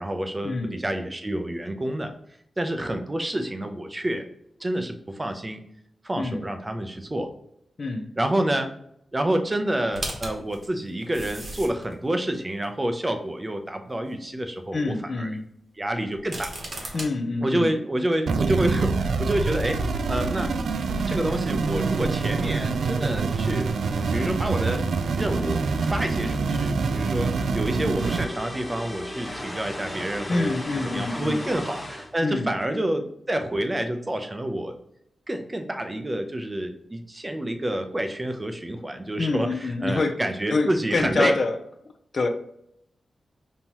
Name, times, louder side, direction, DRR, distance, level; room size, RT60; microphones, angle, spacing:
voice 1, 0.0-2.1 2.6-4.2 4.6-5.6 6.0-7.3 8.2-8.7 9.1-15.3 15.8-16.9 17.4-19.8 20.1-20.5 21.1-23.7 24.1-24.8 25.2-34.7 35.3-41.4, right 1 dB, 15° right, 6 dB, 0.5 m, -28 dB
voice 2, 7.8-8.1 14.7-15.5 16.9-17.7 30.3-31.4 32.2-32.5 39.2-40.2 40.5-41.6 42.1-42.3, left 3 dB, 40° left, 6 dB, 0.5 m, -26 dB
sound 1, 9.9-11.9 12.6-12.7 16.1-17.1, right 1 dB, 40° right, 1.0 m, -35 dB
sound 2, 18.3-28.2, right 4 dB, 85° right, 0.4 m, -26 dB
sound 3, 28.0-32.1, left 1 dB, 15° left, 1.1 m, -36 dB
5.4 x 2.9 x 2.9 m, 0.72 s
wide cardioid pair, 165°, 0 cm